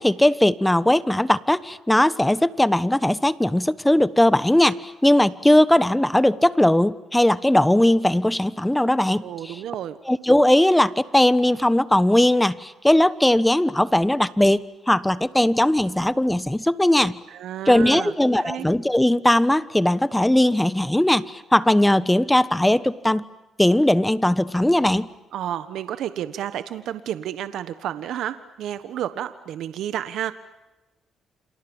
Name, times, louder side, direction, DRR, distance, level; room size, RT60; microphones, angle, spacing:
voice 1, 0.0-9.6 10.1-17.2 17.7-23.2 23.6-25.1, left 1 dB, 5° left, 16 dB, 1.2 m, -19 dB
voice 2, 9.2-10.0 17.3-18.7 25.3-30.3, right 11 dB, 80° right, 12 dB, 1.3 m, -31 dB
29.5 x 27.0 x 7.2 m, 1.0 s
cardioid pair, 90°, 0 cm